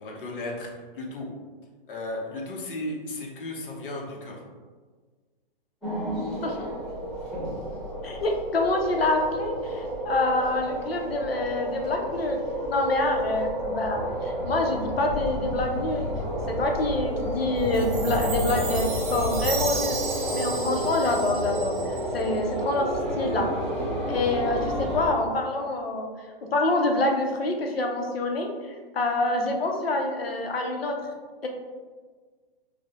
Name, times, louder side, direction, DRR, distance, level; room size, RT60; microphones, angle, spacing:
voice 1, 0.0-1.3 1.9-4.4, left 2 dB, 65° left, -1 dB, 0.9 m, -35 dB
sound 1, 5.8-25.1, equal, ahead, 0.8 m, -30 dB
voice 2, 6.2-6.7 8.0-12.4 12.7-16.1 16.5-20.0 20.3-21.7 22.1-22.9 23.2-23.5 24.1-26.1 26.4-28.5 28.9-31.0 31.4-31.5, left 2 dB, 90° left, 2 dB, 0.7 m, -26 dB
Chime, 17.7-22.2, right 5 dB, 55° right, 0.7 m, -34 dB
4.8 x 2.1 x 2.4 m, 1.5 s
hypercardioid pair, 130°, 29 cm